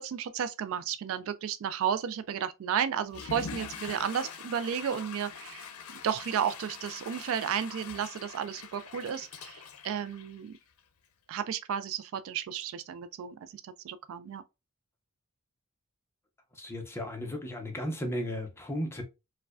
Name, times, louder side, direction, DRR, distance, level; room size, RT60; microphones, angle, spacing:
voice 1, 0.0-10.6 11.3-14.4, right 8 dB, 65° right, 0.3 m, -33 dB
Water / Toilet flush, 3.0-10.8, left 6 dB, 75° left, 0.6 m, -44 dB
voice 2, 16.6-19.0, equal, 10° left, 0.7 m, -35 dB
4.6 x 2.2 x 2.3 m
head